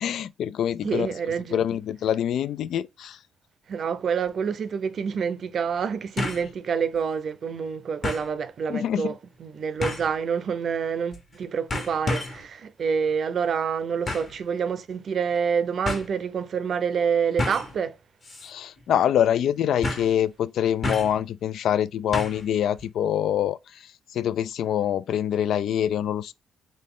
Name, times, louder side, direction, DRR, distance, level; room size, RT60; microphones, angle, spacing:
voice 1, 0.0-1.1 1.5-3.2 8.7-9.1 18.4-26.3, left 10 dB, 75° left, 0.3 m, -25 dB
voice 2, 0.8-1.6 3.7-18.0, right 6 dB, 55° right, 0.6 m, -27 dB
sound 1, 4.3-4.4 6.2-6.5 6.9-7.0 8.0-8.3 9.8-10.2 11.1-11.4 11.7-12.4 14.1-14.4 15.3-15.4 15.8-16.1 17.4-17.8 18.2-18.5 18.8-18.9 19.8-20.2 20.8-21.2 22.1-22.5 22.8-22.9, left 2 dB, 40° left, 1.3 m, -30 dB
3.9 x 3.2 x 3.7 m
cardioid pair, 90°, 0 cm